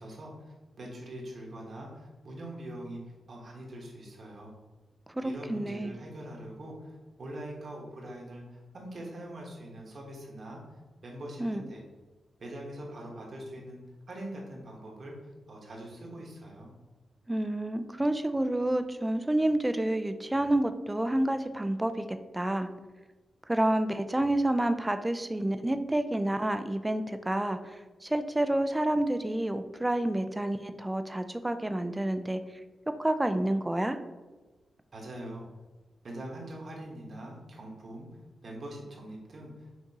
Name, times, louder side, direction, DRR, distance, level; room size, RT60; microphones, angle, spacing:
voice 1, 0.0-3.0 3.3-4.5 5.2-11.8 12.4-13.8 14.1-15.1 15.5-16.7 34.9-35.5 36.0-38.1 38.4-39.7, right 1 dB, 55° right, -2 dB, 1.2 m, -43 dB
voice 2, 5.1-6.0 11.4-11.7 17.3-22.7 23.5-32.4 32.9-34.0, right 1 dB, 15° right, 9 dB, 0.3 m, -29 dB
5.8 x 2.7 x 2.8 m, 1.2 s
cardioid pair, 95°, 0 cm